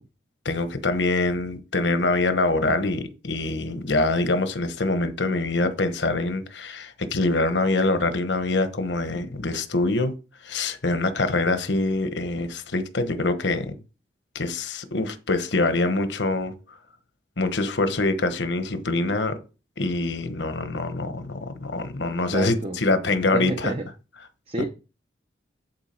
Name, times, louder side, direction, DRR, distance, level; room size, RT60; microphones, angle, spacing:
voice 1, 0.4-10.1 10.4-13.7 14.3-16.5 17.4-19.4 19.8-23.7, left 2 dB, 80° left, 1.1 m, -24 dB
voice 2, 22.1-22.8 23.3-23.9 24.5-24.7, right 2 dB, 35° right, 0.7 m, -30 dB
11.0 x 4.6 x 4.4 m
head